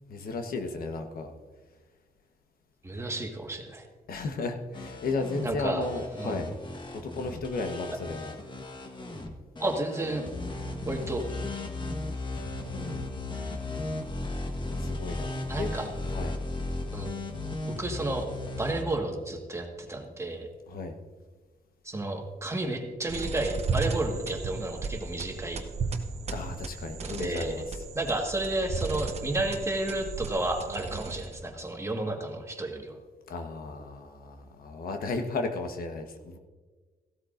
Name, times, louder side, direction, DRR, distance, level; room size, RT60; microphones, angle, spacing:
voice 1, 0.1-1.3 4.1-6.5 7.0-8.4 12.3-13.2 14.8-15.7 16.0-16.4 20.7-20.9 26.3-27.8 33.3-36.4, left 3 dB, 75° left, 5 dB, 1.2 m, -34 dB
voice 2, 2.8-3.9 5.4-5.9 6.1-6.4 9.6-10.3 10.8-11.3 15.5-15.9 16.9-17.3 17.8-18.3 18.6-20.5 21.8-25.6 27.0-27.6 27.9-33.0, right 2 dB, 20° right, 2 dB, 1.6 m, -32 dB
sound 1, 4.7-18.8, left 2 dB, 30° left, 1.3 m, -36 dB
sound 2, 23.1-31.5, right 4 dB, 45° right, 1.0 m, -35 dB
16.0 x 12.5 x 2.6 m, 1.4 s
cardioid pair, 125°, 15 cm